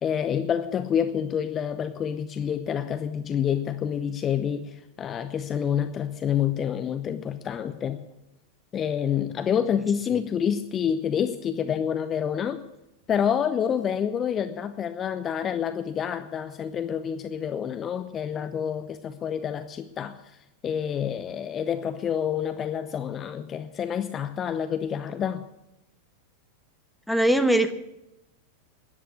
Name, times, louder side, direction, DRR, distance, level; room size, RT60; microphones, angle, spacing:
voice 1, 0.0-8.0 8.7-12.6 13.1-20.2 20.6-25.4, left 8 dB, 25° left, 0.8 m, -28 dB
voice 2, 27.1-27.7, right 1 dB, ahead, 1.2 m, -21 dB
13.5 x 10.5 x 8.6 m
figure-of-eight pair, 90°, 0 cm